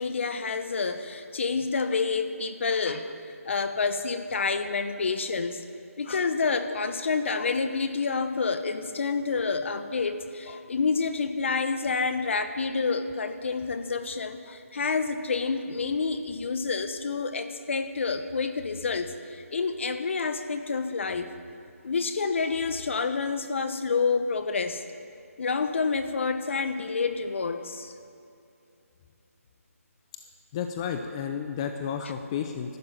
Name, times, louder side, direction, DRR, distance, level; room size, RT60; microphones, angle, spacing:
voice 1, 0.0-3.2 3.5-5.6 6.0-21.3 21.8-24.8 25.4-27.9 32.0-32.1, left 4 dB, 50° left, 9 dB, 1.2 m, -28 dB
voice 2, 30.5-32.8, left 7 dB, 20° left, 5 dB, 0.7 m, -32 dB
13.0 x 12.0 x 8.9 m, 2.6 s
figure-of-eight pair, 160°, 8 cm